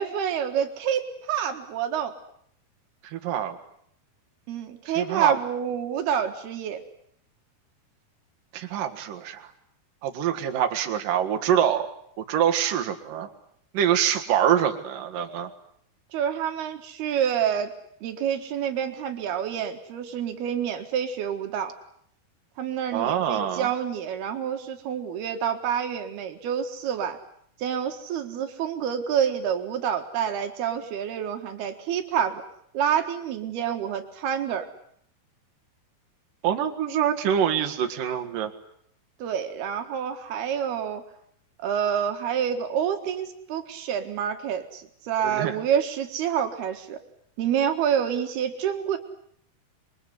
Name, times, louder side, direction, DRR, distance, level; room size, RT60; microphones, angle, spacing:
voice 1, 0.0-2.1 4.5-6.8 16.1-17.7 18.0-21.8 22.6-27.2 27.6-32.4 32.7-34.7 39.2-41.0 41.6-47.0 47.4-49.0, right 8 dB, 80° right, 6 dB, 3.6 m, -28 dB
voice 2, 3.0-3.6 4.9-5.4 8.5-9.5 10.0-11.9 12.2-13.3 13.7-15.5 22.9-23.7 36.4-38.5 45.2-45.6, right 9 dB, 65° right, 5 dB, 3.4 m, -25 dB
26.5 x 22.5 x 9.5 m, 0.69 s
omnidirectional pair, 4.5 m